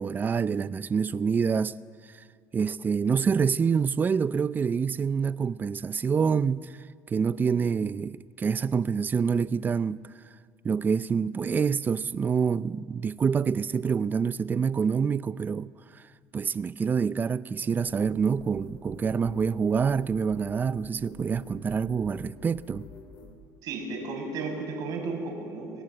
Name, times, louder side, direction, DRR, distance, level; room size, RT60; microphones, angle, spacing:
voice 1, 0.0-1.8 2.5-6.7 7.1-10.0 10.6-16.0 16.3-22.9, right 6 dB, 25° right, 0.6 m, -26 dB
sound 1, 17.9-23.3, left 4 dB, 85° left, 5.1 m, -48 dB
voice 2, 23.6-25.8, right 3 dB, 60° right, 7.1 m, -34 dB
29.5 x 19.5 x 7.8 m
cardioid pair, 120°, 7 cm